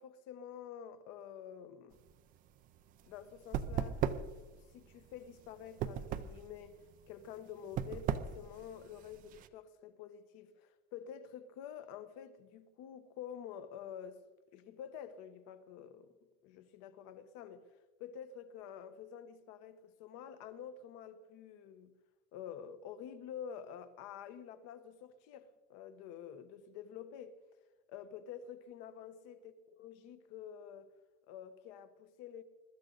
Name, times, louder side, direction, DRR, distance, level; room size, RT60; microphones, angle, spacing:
voice 1, 0.0-2.0 3.0-4.2 4.5-6.7 7.1-14.2 14.5-16.1 16.4-17.7 18.0-21.9 22.3-27.4 27.9-30.9 31.3-32.4, left 8 dB, 45° left, 1.1 m, -49 dB
sound 1, 1.9-9.5, right 9 dB, 25° right, 0.5 m, -38 dB
22.0 x 13.0 x 4.0 m
supercardioid pair, 170°, 35 cm